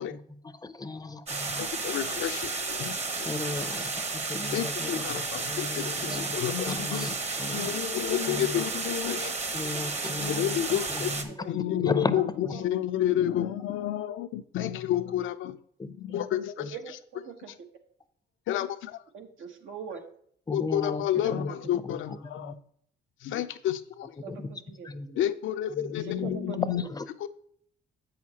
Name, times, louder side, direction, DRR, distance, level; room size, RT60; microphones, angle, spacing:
voice 1, 0.0-1.6 3.2-7.8 8.3-8.7 9.5-12.6 15.8-15.9 16.6-16.7 19.9-20.0 20.5-21.5 21.8-22.6 24.2-24.5 24.8-25.2 25.7-27.1, left 3 dB, 20° left, 0.5 m, -36 dB
sound 1, 1.3-11.2, right 3 dB, 35° right, 0.9 m, -32 dB
voice 2, 1.6-3.0 4.5-7.1 7.5-9.4 10.2-11.1 11.5-12.2 12.6-15.6 16.0-17.0 18.5-19.0 20.5-22.5 23.2-24.1 25.2-26.8 27.2-27.3, left 11 dB, 80° left, 0.5 m, -30 dB
voice 3, 5.9-6.4 9.0-9.1 16.7-17.5 19.1-20.0 24.2-24.4 24.8-24.9 26.1-26.6, right 6 dB, 80° right, 1.1 m, -41 dB
8.0 x 6.4 x 2.8 m
cardioid pair, 90°, 20 cm